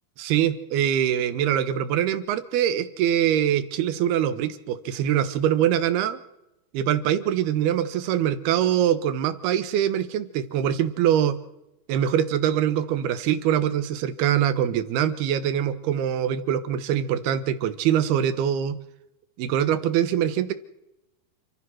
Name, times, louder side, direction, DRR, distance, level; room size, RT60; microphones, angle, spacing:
voice 1, 0.2-6.2 6.7-11.4 11.9-18.8 19.4-20.5, right 10 dB, 80° right, 12 dB, 3.2 m, -23 dB
29.5 x 14.5 x 6.3 m, 0.89 s
omnidirectional pair, 4.5 m